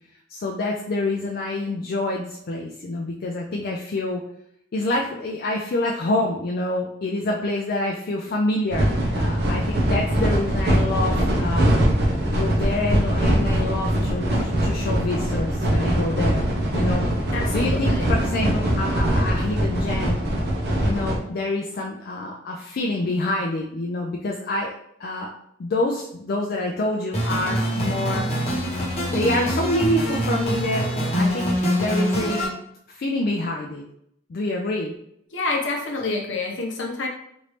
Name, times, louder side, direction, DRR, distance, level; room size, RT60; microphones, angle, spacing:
voice 1, 0.3-4.2 4.7-11.7 12.3-16.4 16.7-17.1 17.5-20.2 20.8-24.7 25.0-25.3 25.6-28.3 29.1-32.4 32.9-33.8 34.3-34.9, left 2 dB, 45° left, -1 dB, 0.3 m, -27 dB
sound 1, 8.7-21.2, equal, 50° right, 0.7 m, -22 dB
voice 2, 17.3-18.1 35.3-37.1, left 3 dB, 60° left, 0 dB, 0.7 m, -28 dB
sound 2, 27.1-32.5, equal, 30° left, 0.9 m, -24 dB
3.1 x 2.6 x 3.2 m, 0.73 s
head